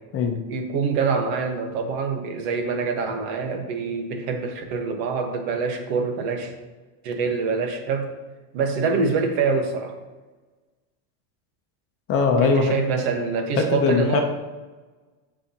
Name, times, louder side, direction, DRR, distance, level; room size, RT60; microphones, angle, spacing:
voice 1, 0.5-6.5 7.0-8.1 8.5-9.9 12.4-14.2, right 5 dB, 65° right, 4 dB, 1.6 m, -25 dB
voice 2, 12.1-12.7 13.6-14.2, left 4 dB, 30° left, 3 dB, 0.8 m, -20 dB
15.0 x 5.0 x 3.0 m, 1.2 s
cardioid pair, 175°, 43 cm